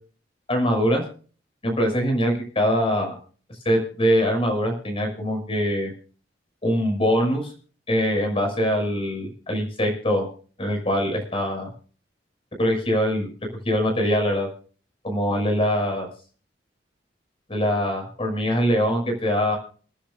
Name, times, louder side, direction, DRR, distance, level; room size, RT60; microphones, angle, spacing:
voice 1, 0.5-1.0 1.6-3.1 3.6-5.9 6.6-7.5 7.9-10.3 10.6-11.7 12.6-13.3 13.6-14.5 15.0-16.1 17.5-19.6, equal, 30° left, 3 dB, 6.0 m, -23 dB
29.0 x 10.0 x 2.6 m, 0.41 s
head